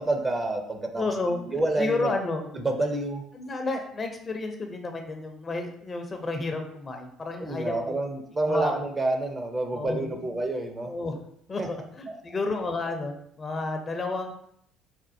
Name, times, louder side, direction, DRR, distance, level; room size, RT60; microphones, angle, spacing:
voice 1, 0.0-2.1 2.5-3.2 7.4-10.9 11.6-11.7 12.1-12.2, right 2 dB, 25° right, 4 dB, 0.6 m, -28 dB
voice 2, 1.0-1.4 1.8-2.4 3.3-8.0 8.5-8.7 9.7-10.2 10.9-11.2 11.5-14.3, left 3 dB, 35° left, 4 dB, 0.6 m, -31 dB
4.2 x 2.1 x 2.6 m, 0.68 s
hypercardioid pair, 60°, 0 cm